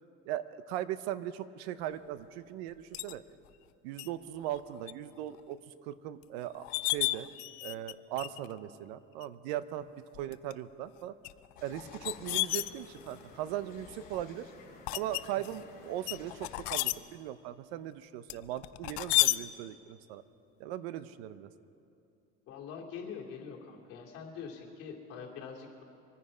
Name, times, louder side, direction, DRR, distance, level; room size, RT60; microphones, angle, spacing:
voice 1, 0.3-3.2 3.8-7.3 7.6-9.9 10.1-11.1 11.6-14.5 14.9-20.2 20.6-21.5, right 12 dB, 90° right, 14 dB, 0.8 m, -39 dB
sound 1, 2.9-3.1 4.0-4.1 4.5-4.9 5.3-5.4 6.2-6.3 6.6-8.5 9.2-9.3 10.1-10.5 11.2-13.2 13.8-14.2 14.9-15.6 16.1-16.9 18.3-19.4, left 20 dB, 85° left, 0.5 m, -32 dB
sound 2, 11.6-16.7, left 4 dB, 30° left, 2.7 m, -54 dB
voice 2, 22.5-25.8, left 6 dB, 50° left, -2 dB, 2.6 m, -44 dB
25.0 x 9.7 x 5.1 m, 2.6 s
cardioid pair, 155°, 30 cm